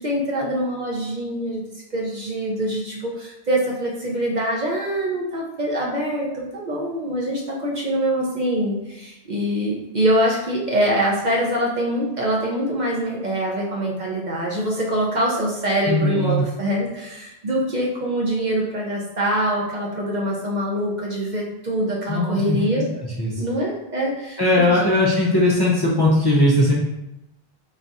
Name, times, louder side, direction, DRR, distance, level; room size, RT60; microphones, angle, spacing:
voice 1, 0.0-1.6 1.9-22.9 23.4-24.6, right 1 dB, 50° right, -2 dB, 0.7 m, -24 dB
voice 2, 15.9-16.4 22.1-22.6 23.2-23.3 24.4-26.7, left 1 dB, 30° left, -5 dB, 0.5 m, -18 dB
3.9 x 2.4 x 3.9 m, 0.89 s
omnidirectional pair, 1.1 m